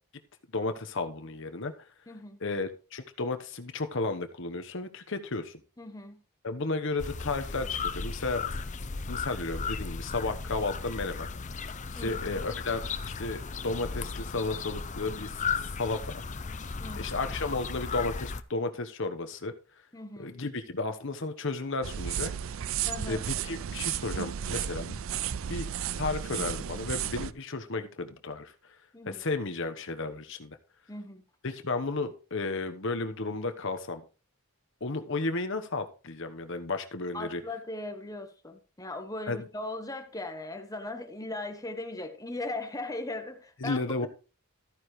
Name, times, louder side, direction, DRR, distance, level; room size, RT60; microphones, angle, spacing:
voice 1, 0.5-1.7 2.4-5.6 6.4-8.4 9.1-11.3 11.9-15.3 15.8-16.2 17.0-19.5 20.2-22.3 23.1-25.0 25.5-25.7 26.0-28.5 29.1-30.6 31.4-34.0 34.8-37.4 39.3-39.5 43.6-44.1, left 3 dB, 60° left, 1.1 m, -33 dB
voice 2, 2.1-2.4 5.8-6.2 11.9-12.2 16.8-17.1 19.9-20.3 22.8-23.2 28.9-29.2 30.9-31.2 37.1-43.8, left 2 dB, 15° left, 1.2 m, -38 dB
sound 1, 7.0-18.4, left 5 dB, 35° left, 0.6 m, -35 dB
sound 2, 21.8-27.3, right 9 dB, 65° right, 0.4 m, -33 dB
13.5 x 9.5 x 3.2 m
head